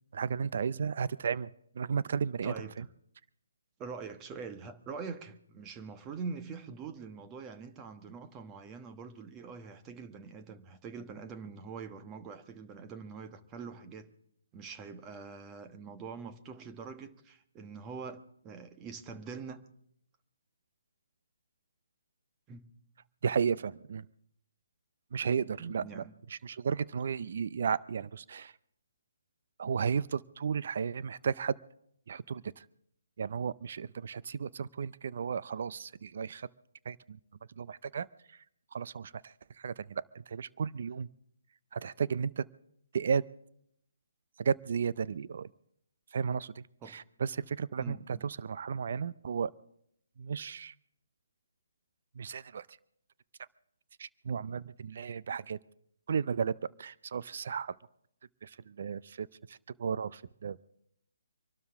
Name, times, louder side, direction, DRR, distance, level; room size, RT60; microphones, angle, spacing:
voice 1, 0.1-1.5 1.7-2.9 23.2-24.1 25.1-26.0 26.3-28.5 29.6-31.6 32.1-32.7 33.2-36.5 36.9-37.2 37.6-38.4 38.7-41.1 41.7-42.4 42.9-43.2 44.4-45.5 46.1-49.5 50.2-50.7 52.2-52.7 54.0-55.6 56.1-56.5 56.8-57.7 58.4-60.6, right 6 dB, 55° right, 0.5 m, -34 dB
voice 2, 2.4-2.7 3.8-14.1 14.5-19.6 22.5-22.7 25.6-26.1 46.8-47.0 47.8-48.2, right 5 dB, 20° right, 1.2 m, -44 dB
25.5 x 12.5 x 3.6 m
figure-of-eight pair, 145°, 0 cm